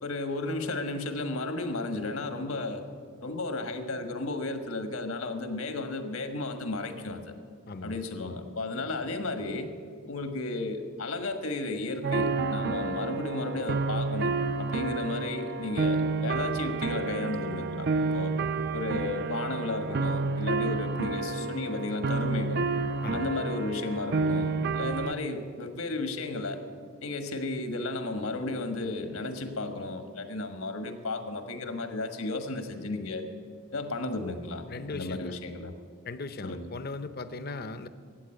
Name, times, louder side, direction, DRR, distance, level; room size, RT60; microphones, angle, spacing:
voice 1, 0.0-2.8 3.2-7.3 7.8-9.7 10.1-18.3 18.7-22.6 23.1-26.6 27.0-33.3 33.7-35.7 36.4-36.7, left 2 dB, 75° left, 7 dB, 1.4 m, -34 dB
voice 2, 7.7-8.0 23.0-23.3 34.7-35.4 36.0-37.9, left 3 dB, 45° left, 12 dB, 0.7 m, -38 dB
sound 1, 12.0-25.1, right 3 dB, 50° right, 0.5 m, -30 dB
13.5 x 8.7 x 8.9 m, 2.1 s
head